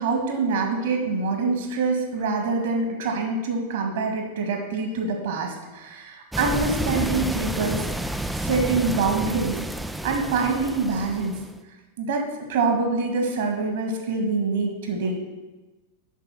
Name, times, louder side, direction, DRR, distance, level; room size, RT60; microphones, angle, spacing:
voice 1, 0.0-9.6 10.0-11.4 12.0-15.1, right 4 dB, 55° right, 3 dB, 2.0 m, -25 dB
sound 1, 6.3-11.6, right 1 dB, 5° right, 0.4 m, -30 dB
8.2 x 5.9 x 6.0 m, 1.2 s
figure-of-eight pair, 90°, 0 cm